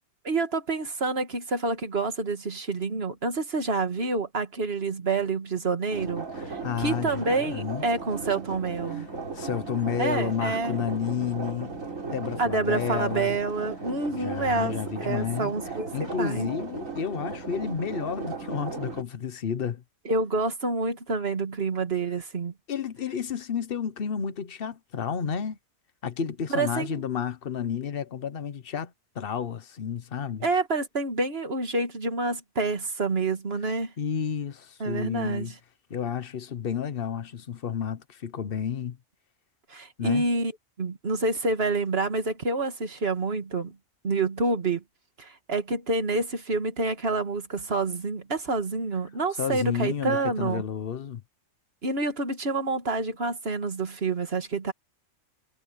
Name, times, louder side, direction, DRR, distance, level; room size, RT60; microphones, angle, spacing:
voice 1, 0.2-9.1 10.0-10.8 12.4-16.5 20.1-22.5 26.5-27.0 30.4-33.9 34.8-35.5 39.7-40.5 40.8-43.8 44.0-44.8 45.2-50.6 51.8-54.7, right 3 dB, 50° right, 2.2 m, -28 dB
sound 1, 5.9-19.0, right 4 dB, 80° right, 4.2 m, -36 dB
voice 2, 6.4-7.8 8.9-9.0 9.3-11.8 12.0-13.4 14.1-15.5 15.9-19.8 22.7-25.6 26.0-30.5 34.0-35.5 35.9-39.0 40.0-40.2 49.4-51.2, left 7 dB, 45° left, 1.1 m, -31 dB
omnidirectional pair, 1.4 m